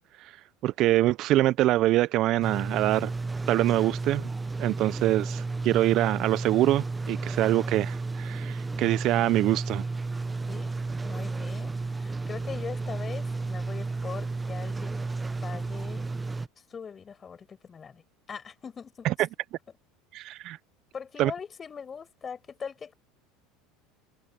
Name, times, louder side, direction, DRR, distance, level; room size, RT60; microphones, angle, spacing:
voice 1, 0.6-3.1 3.5-4.3 4.6-9.8 19.0-19.1 20.1-20.6 21.2-21.3, right 15 dB, 55° right, 0.5 m, -24 dB
sound 1, 2.4-16.5, right 3 dB, 15° right, 0.7 m, -32 dB
voice 2, 11.0-15.1 15.4-16.1 16.6-18.0 18.3-19.1 20.9-22.9, left 6 dB, 30° left, 7.0 m, -41 dB
supercardioid pair, 105°, 0 cm